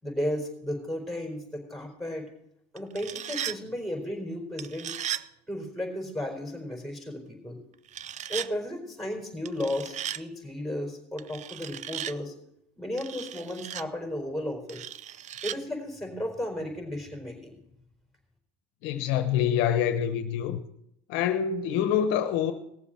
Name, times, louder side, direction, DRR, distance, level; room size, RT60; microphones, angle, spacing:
voice 1, 0.0-2.3 2.7-4.9 5.5-7.6 8.3-12.3 12.8-14.9 15.4-17.6, left 1 dB, ahead, 4.4 m, -34 dB
sound 1, 2.8-3.6 4.6-5.3 7.9-8.5 9.5-10.2 11.2-12.2 13.0-13.8 14.7-15.6, right 10 dB, 40° right, 0.5 m, -36 dB
voice 2, 18.8-20.6 21.1-22.5, left 9 dB, 75° left, 1.0 m, -26 dB
18.0 x 7.2 x 5.9 m
supercardioid pair, 90°, 19 cm